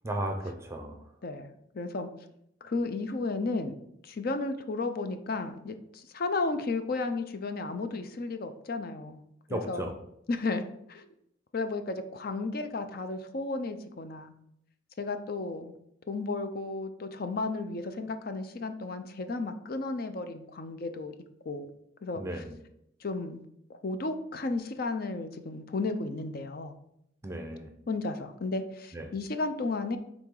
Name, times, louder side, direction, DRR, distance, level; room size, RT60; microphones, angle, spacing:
voice 1, 0.0-1.0 9.5-9.9 22.2-22.6 27.2-27.7 28.9-29.1, right 1 dB, 15° right, 4 dB, 0.6 m, -35 dB
voice 2, 1.2-2.1 2.6-3.7 4.0-9.2 9.5-9.9 10.3-10.6 10.9-11.1 11.5-14.3 15.0-15.7 16.1-21.1 21.5-21.7 22.0-22.4 23.0-23.4 23.7-26.7 27.9-30.0, left 3 dB, 55° left, 8 dB, 0.6 m, -33 dB
5.8 x 3.9 x 4.8 m, 0.78 s
head